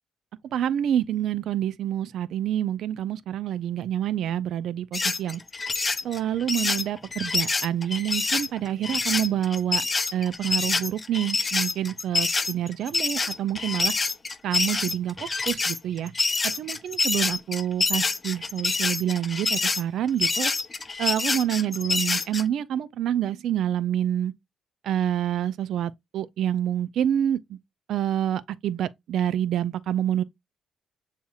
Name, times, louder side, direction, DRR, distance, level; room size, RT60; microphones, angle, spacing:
voice 1, 0.5-5.4 6.0-9.9 10.1-13.9 14.4-16.1 16.6-20.5 21.0-24.3 24.8-27.6 27.9-30.2, right 10 dB, 75° right, 0.4 m, -27 dB
sound 1, 4.9-22.4, left 3 dB, 30° left, 0.5 m, -26 dB
7.1 x 2.8 x 2.3 m
cardioid pair, 90°, 0 cm